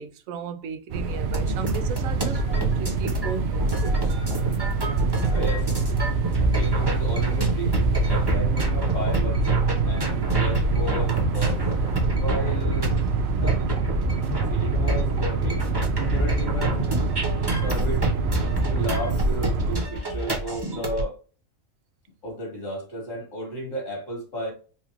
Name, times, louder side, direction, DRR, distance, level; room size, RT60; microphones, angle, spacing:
voice 1, 0.0-4.1 4.9-5.1, right 5 dB, 80° right, 1.0 m, -35 dB
sound 1, 0.9-19.8, right 4 dB, 65° right, 0.7 m, -26 dB
sound 2, 1.3-21.0, right 1 dB, 20° right, 0.9 m, -27 dB
voice 2, 5.3-5.7 6.4-9.5 9.9-11.6 12.2-12.9 13.3-13.6 14.5-15.6 16.0-17.0 17.5-18.2 18.7-21.2 22.2-24.5, equal, 70° left, 2.2 m, -33 dB
4.3 x 2.4 x 3.0 m
omnidirectional pair, 1.4 m